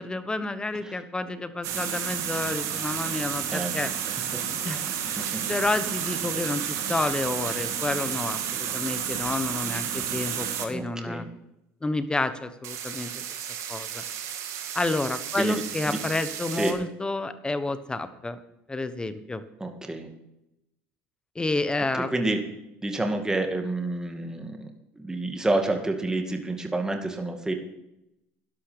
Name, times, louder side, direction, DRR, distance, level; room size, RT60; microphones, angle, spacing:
voice 1, 0.0-3.9 4.6-4.8 5.1-11.2 11.8-13.2 13.7-14.0 14.7-18.4 18.7-19.4 21.3-22.1, left 2 dB, 15° left, 12 dB, 1.1 m, -30 dB
sound 1, 1.6-10.6 12.6-16.7, right 9 dB, 65° right, 2.1 m, -31 dB
voice 2, 4.1-4.4 5.2-5.4 6.2-6.5 10.7-11.3 15.3-16.0 16.5-16.8 19.6-20.1 21.9-22.4 22.8-27.5, right 2 dB, 10° right, 4 dB, 2.2 m, -29 dB
12.0 x 11.5 x 5.2 m, 0.87 s
supercardioid pair, 90°, 6 cm